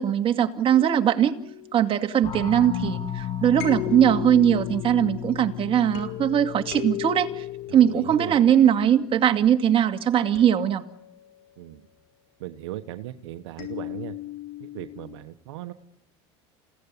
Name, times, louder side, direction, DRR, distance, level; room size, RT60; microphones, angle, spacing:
voice 1, 0.0-1.4 1.7-7.4 7.7-10.8, right 9 dB, 40° right, 5 dB, 2.3 m, -20 dB
sound 1, 0.7-2.6 3.6-9.4 10.3-11.7 13.6-15.2, left 15 dB, 75° left, 5.3 m, -38 dB
sound 2, 2.2-8.6, left 9 dB, 40° left, 3.1 m, -35 dB
voice 2, 7.7-8.4 11.6-11.8 12.4-14.1 14.6-15.7, right 14 dB, 85° right, 9 dB, 1.3 m, -37 dB
28.0 x 17.0 x 9.8 m, 0.82 s
supercardioid pair, 105°, 14 cm